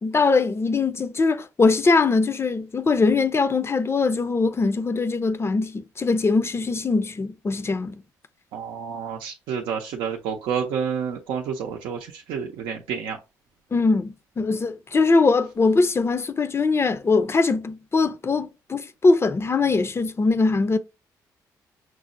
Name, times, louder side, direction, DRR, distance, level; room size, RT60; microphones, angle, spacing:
voice 1, 0.0-8.0 13.7-20.8, left 3 dB, 30° left, 0.5 m, -21 dB
voice 2, 8.5-12.0 12.3-13.2, right 7 dB, 80° right, 0.5 m, -29 dB
6.0 x 2.0 x 2.5 m
supercardioid pair, 55°, 9 cm